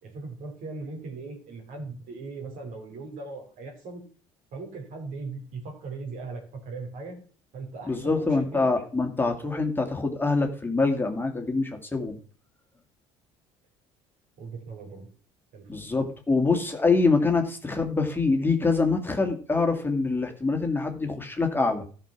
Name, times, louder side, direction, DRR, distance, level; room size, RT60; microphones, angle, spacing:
voice 1, 0.0-4.0 4.5-7.2 7.5-8.6 14.4-15.1 15.5-15.7, right 3 dB, 60° right, 2 dB, 4.3 m, -39 dB
voice 2, 7.9-12.2 15.7-21.8, left 3 dB, 15° left, 3 dB, 2.2 m, -25 dB
13.0 x 5.6 x 5.9 m, 0.42 s
hypercardioid pair, 65°, 15 cm